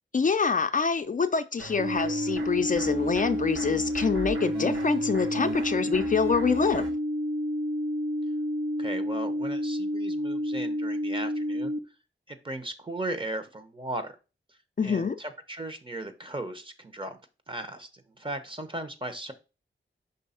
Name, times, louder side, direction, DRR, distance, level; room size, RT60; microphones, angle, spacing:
voice 1, 0.1-6.9 14.8-15.2, left 5 dB, 40° left, 0.5 m, -26 dB
sound 1, 1.6-6.9, right 1 dB, 85° right, 3.6 m, -40 dB
sound 2, 1.8-11.8, equal, 70° right, 0.8 m, -30 dB
voice 2, 8.8-11.7 12.3-14.1 14.8-17.2 17.5-17.9 18.2-19.3, right 1 dB, 25° right, 1.0 m, -36 dB
5.4 x 3.4 x 5.5 m
wide cardioid pair, 85°, 20 cm